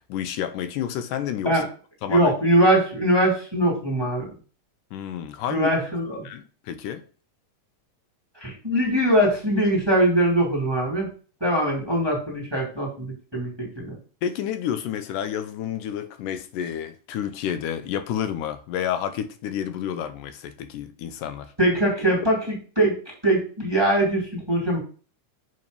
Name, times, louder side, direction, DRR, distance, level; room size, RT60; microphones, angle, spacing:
voice 1, 0.1-1.6 2.0-2.3 4.9-5.7 6.3-7.0 14.2-21.5, left 9 dB, 90° left, 2.2 m, -30 dB
voice 2, 2.1-4.3 5.5-6.2 8.4-11.1 11.4-13.9 21.6-24.8, right 1 dB, 10° right, 2.0 m, -22 dB
6.9 x 3.9 x 5.2 m
omnidirectional pair, 3.7 m